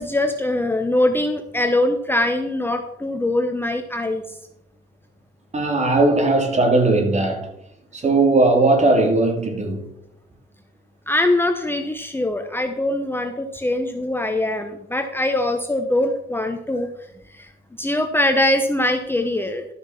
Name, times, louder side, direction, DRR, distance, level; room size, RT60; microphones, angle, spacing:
voice 1, 0.0-4.4 11.1-16.9 17.3-17.5 17.8-19.7, left 1 dB, 10° left, 1.0 m, -22 dB
voice 2, 5.5-7.5 7.9-9.9, right 2 dB, 35° right, 2.9 m, -18 dB
12.5 x 6.5 x 5.8 m
cardioid pair, 90°, 20 cm